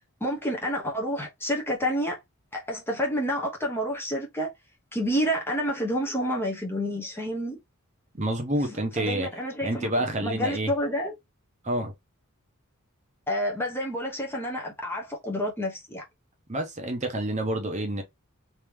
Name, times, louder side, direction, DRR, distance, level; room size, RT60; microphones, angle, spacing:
voice 1, 0.2-2.2 2.5-4.5 4.9-7.6 8.7-11.1 13.3-16.0, equal, 10° left, 0.9 m, -29 dB
voice 2, 8.1-9.3 9.6-10.7 11.6-11.9 16.5-18.0, right 1 dB, 30° right, 0.9 m, -28 dB
3.5 x 2.9 x 3.1 m
head